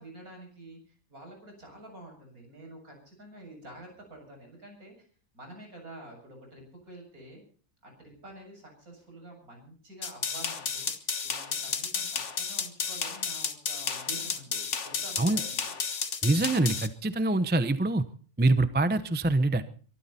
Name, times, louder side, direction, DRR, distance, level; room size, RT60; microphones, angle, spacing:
voice 1, 0.0-5.1 5.3-7.4 7.8-15.8 19.6-19.7, right 1 dB, 65° right, 2 dB, 8.0 m, -48 dB
sound 1, 10.0-16.9, left 5 dB, 50° left, 1.7 m, -32 dB
voice 2, 16.2-18.0 18.4-19.6, right 2 dB, 10° right, 12 dB, 0.6 m, -25 dB
23.5 x 13.5 x 4.3 m, 0.43 s
omnidirectional pair, 1.6 m